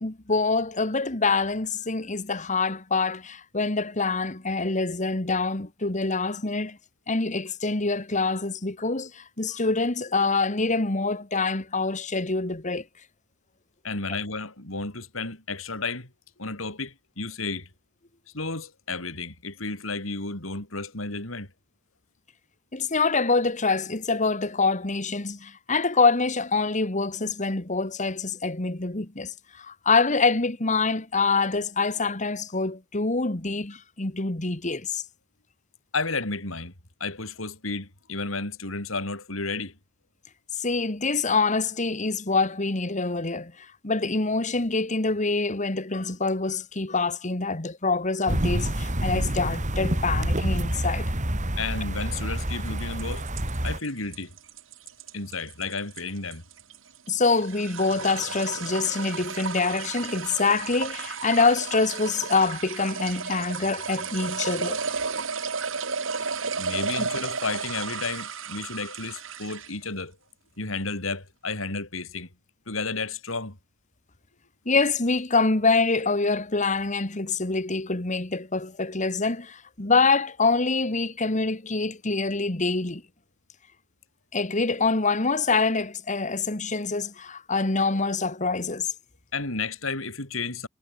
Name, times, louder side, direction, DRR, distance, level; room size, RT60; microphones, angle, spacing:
voice 1, 0.0-6.8 7.1-12.8 22.7-35.0 40.6-51.1 57.1-64.8 67.0-67.1 74.7-83.0 84.3-88.9, left 3 dB, 35° left, 1.8 m, -25 dB
voice 2, 13.8-16.1 16.4-17.7 18.3-21.5 35.9-36.7 37.0-39.8 51.6-53.3 53.6-54.4 55.1-56.4 66.6-70.2 70.6-72.3 72.7-73.6 89.3-90.7, left 3 dB, 85° left, 5.4 m, -32 dB
sound 1, 48.3-53.8, right 1 dB, 40° right, 4.1 m, -27 dB
sound 2, 52.6-69.8, right 5 dB, 70° right, 2.5 m, -33 dB
head